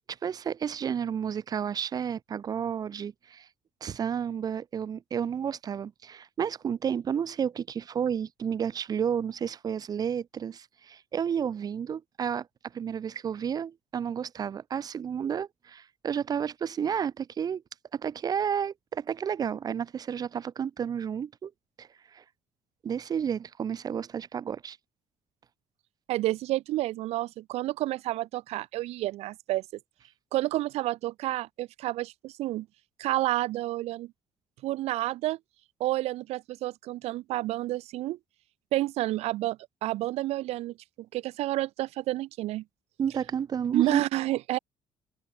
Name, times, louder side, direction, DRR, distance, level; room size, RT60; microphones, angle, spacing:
voice 1, 0.1-3.5 3.8-12.5 12.7-17.6 17.9-21.5 21.8-22.2 22.8-24.8 43.0-44.0, right 8 dB, 40° right, 1.2 m, -31 dB
voice 2, 26.1-29.6 30.3-32.7 33.0-34.1 34.6-35.4 35.8-38.2 38.7-40.7 41.1-42.6 43.7-44.6, right 16 dB, 80° right, 1.2 m, -30 dB
cardioid pair, 145°, 11 cm